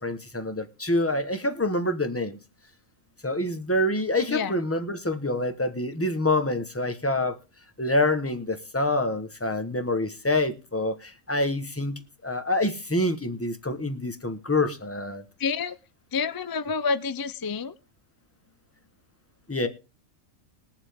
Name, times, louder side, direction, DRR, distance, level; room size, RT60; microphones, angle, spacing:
voice 1, 0.0-2.4 3.2-7.4 7.8-15.2 19.5-19.7, left 1 dB, 10° left, 1.1 m, -26 dB
voice 2, 15.4-15.8 16.1-17.7, left 5 dB, 30° left, 0.4 m, -28 dB
21.0 x 7.2 x 3.6 m
omnidirectional pair, 1.4 m